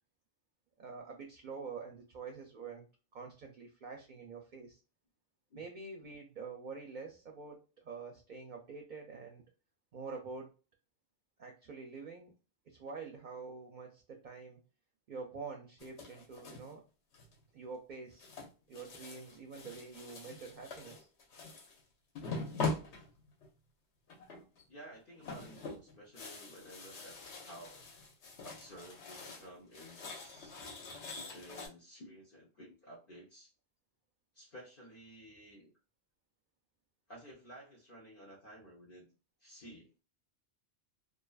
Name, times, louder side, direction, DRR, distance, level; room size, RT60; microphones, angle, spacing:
voice 1, 0.8-2.8 3.1-4.8 5.5-9.4 9.9-10.5 11.4-12.3 12.7-14.6 15.1-16.8 17.5-18.3 18.7-21.1 30.6-30.8, right 4 dB, 55° right, 2 dB, 0.6 m, -46 dB
sound 1, 15.8-16.7 17.1-17.6 18.2-21.8 22.2-23.6 24.1-24.6 24.9-29.5 29.7-31.7, left 3 dB, 85° left, 1.0 m, -43 dB
voice 2, 24.7-27.2 27.5-27.8 28.4-30.6 31.2-33.5 34.3-35.7 37.1-39.1 39.4-39.9, right 1 dB, 55° left, -2 dB, 0.8 m, -53 dB
2.5 x 2.4 x 2.3 m, 0.33 s
omnidirectional pair, 1.1 m